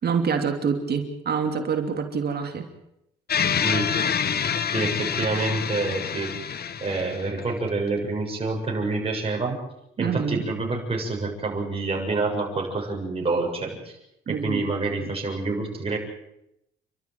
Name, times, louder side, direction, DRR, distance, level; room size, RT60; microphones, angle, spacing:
voice 1, 0.0-2.7 10.0-10.4 14.3-14.6 15.0-15.1, right 6 dB, 55° right, 5 dB, 3.0 m, -26 dB
sound 1, 3.3-7.7, left 7 dB, 50° left, 1.5 m, -27 dB
voice 2, 3.6-6.3 6.8-9.6 10.0-14.0 14.3-16.0, right 3 dB, 30° right, -1 dB, 7.5 m, -28 dB
29.5 x 13.0 x 9.5 m, 0.83 s
cardioid pair, 90°, 20 cm